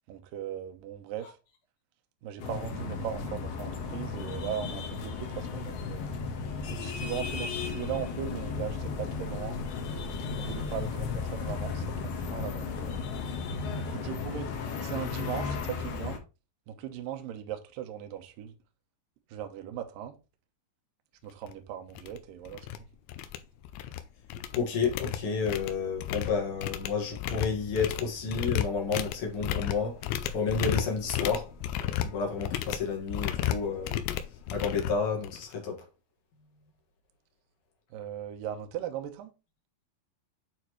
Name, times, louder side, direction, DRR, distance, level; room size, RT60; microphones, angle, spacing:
voice 1, 0.1-1.3 2.2-6.1 6.7-9.6 10.4-13.0 13.8-14.5 14.8-16.2 16.7-18.6 19.3-20.2 21.2-22.6 37.9-39.3, right 10 dB, 75° right, 2.1 m, -38 dB
sound 1, 2.4-16.2, left 5 dB, 70° left, 3.0 m, -35 dB
sound 2, 21.4-21.5 22.0-22.2 22.5-22.8 23.1-24.0 24.3-35.5, left 11 dB, 90° left, 3.0 m, -33 dB
voice 2, 24.5-30.0 30.3-31.5 32.0-34.0 34.5-35.8, left 5 dB, 55° left, 1.6 m, -30 dB
9.0 x 4.2 x 3.1 m
omnidirectional pair, 5.1 m